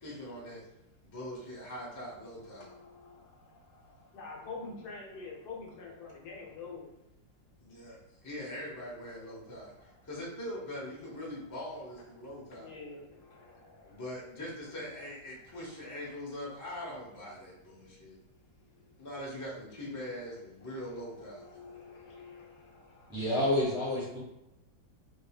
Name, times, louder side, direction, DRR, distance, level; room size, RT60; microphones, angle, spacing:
voice 1, 0.0-0.6 1.0-2.7 7.6-12.7 13.8-18.2 19.0-21.5, left 1 dB, 20° left, -5 dB, 0.4 m, -42 dB
voice 2, 2.5-6.9 9.6-10.0 12.3-14.0 20.6-23.3, left 4 dB, 70° left, -1 dB, 1.2 m, -47 dB
voice 3, 23.1-24.2, left 1 dB, 5° right, -7 dB, 0.8 m, -29 dB
3.7 x 3.4 x 2.3 m, 0.91 s
omnidirectional pair, 1.9 m